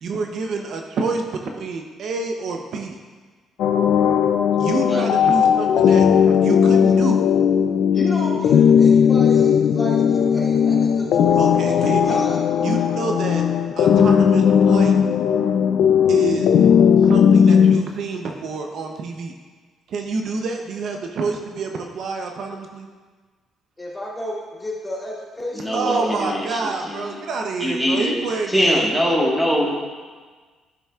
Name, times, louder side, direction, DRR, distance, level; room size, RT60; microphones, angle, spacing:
voice 1, 0.0-3.0 4.6-7.2 11.4-12.3 12.6-13.4 13.8-15.0 16.1-16.7 17.0-19.3 19.9-22.9 25.7-29.2, right 4 dB, 60° right, 3 dB, 0.7 m, -28 dB
sound 1, 3.6-17.8, left 7 dB, 70° left, 0.4 m, -16 dB
voice 2, 7.9-12.4 23.8-26.4, left 1 dB, 15° left, -6 dB, 2.6 m, -32 dB
voice 3, 25.5-26.6 26.9-27.2 27.6-28.2 28.5-29.7, equal, 5° right, -3 dB, 1.5 m, -22 dB
13.0 x 7.0 x 2.4 m, 1.4 s
cardioid pair, 115°, 0 cm